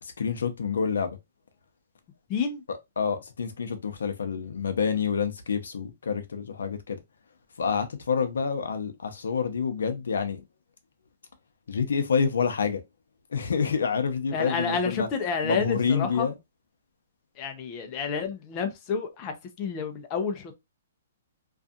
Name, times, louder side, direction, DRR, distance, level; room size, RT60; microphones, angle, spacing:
voice 1, 0.0-1.2 2.7-7.0 7.6-10.4 11.7-12.8 13.3-15.1 15.4-16.3, left 6 dB, 85° left, 0.7 m, -28 dB
voice 2, 2.3-2.6 14.3-16.3 17.4-20.5, left 5 dB, 30° left, 0.6 m, -30 dB
2.6 x 2.4 x 2.4 m
hypercardioid pair, 150°, 0 cm